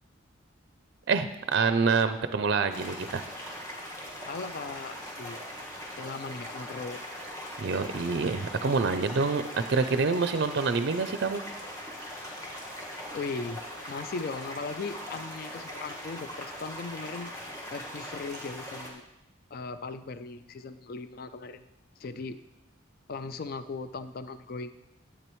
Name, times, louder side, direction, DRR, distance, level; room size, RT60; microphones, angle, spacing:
voice 1, 1.1-3.2 7.6-9.4 9.7-11.4, right 4 dB, 55° right, 10 dB, 0.4 m, -26 dB
sound 1, 2.7-18.9, equal, 15° left, 1.6 m, -41 dB
voice 2, 4.2-5.4 6.0-7.0 13.1-13.6 13.9-17.3 17.7-19.0 19.5-21.6 22.0-22.4 23.1-24.8, left 4 dB, 45° left, 11 dB, 0.4 m, -38 dB
12.0 x 8.3 x 3.1 m, 0.93 s
head